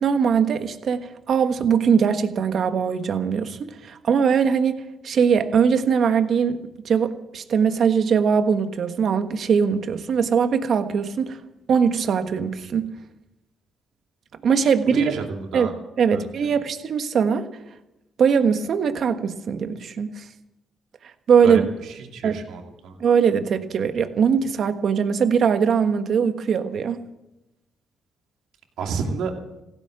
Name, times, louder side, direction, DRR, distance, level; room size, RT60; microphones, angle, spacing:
voice 1, 0.0-11.4 11.7-12.9 14.4-15.1 15.5-15.7 16.0-17.4 18.2-20.3 21.3-21.7 22.2-22.4 23.0-27.0, right 6 dB, 60° right, 9 dB, 1.4 m, -21 dB
voice 2, 14.8-15.7 16.1-16.3 21.4-21.6 22.1-23.0 28.8-29.3, right 5 dB, 80° right, 3 dB, 2.6 m, -29 dB
16.0 x 10.5 x 7.8 m, 0.95 s
cardioid pair, 90°, 0 cm